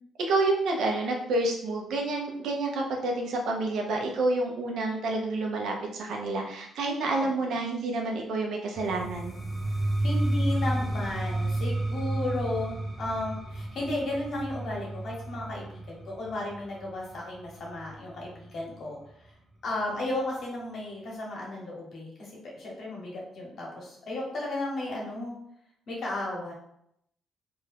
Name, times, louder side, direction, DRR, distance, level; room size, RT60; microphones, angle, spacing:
voice 1, 0.3-9.3, right 2 dB, 75° right, 1 dB, 0.7 m, -29 dB
sound 1, 8.8-18.5, right 1 dB, 15° right, 0.6 m, -31 dB
voice 2, 10.0-19.0 19.2-19.3 19.6-25.4 25.9-26.5, left 2 dB, 60° left, -3 dB, 1.1 m, -34 dB
2.7 x 2.3 x 3.4 m, 0.75 s
cardioid pair, 90°, 0 cm